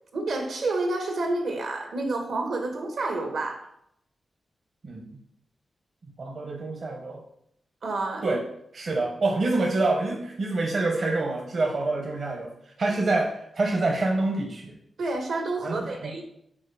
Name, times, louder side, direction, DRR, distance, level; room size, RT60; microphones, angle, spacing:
voice 1, 0.1-3.6 7.8-8.4 15.0-16.2, right 2 dB, 85° right, 3 dB, 1.3 m, -29 dB
voice 2, 6.2-7.2 8.2-8.4 8.7-14.8 15.6-16.2, right 2 dB, 55° right, 1 dB, 0.8 m, -27 dB
5.5 x 4.3 x 4.7 m, 0.73 s
wide cardioid pair, 100°, 0 cm